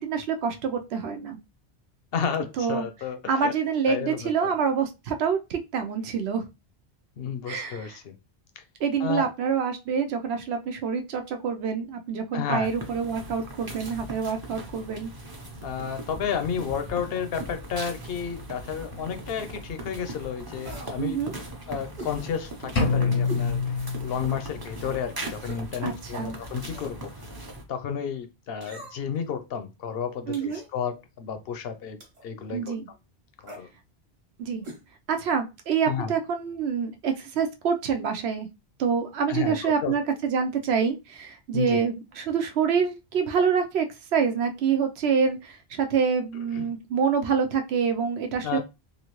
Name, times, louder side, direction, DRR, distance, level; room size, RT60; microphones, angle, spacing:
voice 1, 0.0-1.4 2.6-2.9 3.3-6.5 7.5-8.0 8.8-15.1 21.0-21.4 25.8-26.4 30.3-30.6 32.5-32.9 34.4-34.6 35.1-38.5 38.8-48.6, right 6 dB, 75° right, 0.9 m, -26 dB
voice 2, 2.1-3.5 3.9-4.5 7.2-8.1 8.6-8.7 9.0-9.3 12.3-12.7 15.6-21.2 21.7-27.1 27.7-32.8 33.4-33.7 35.8-36.1 39.3-39.9 41.5-41.8 46.5-46.7 48.4-48.6, left 7 dB, 70° left, 0.7 m, -32 dB
sound 1, 12.6-27.6, right 1 dB, 25° right, 0.6 m, -39 dB
sound 2, 20.6-21.0 22.0-22.2 23.3-23.5 24.0-24.1 25.3-25.7 26.6-27.0 28.6-29.2 30.3-30.7 32.0-32.3 33.4-33.7 34.6-34.8 35.1-35.2, right 1 dB, 40° right, 1.1 m, -42 dB
sound 3, 22.8-24.7, left 4 dB, 85° left, 1.0 m, -26 dB
3.1 x 2.4 x 3.0 m
omnidirectional pair, 1.1 m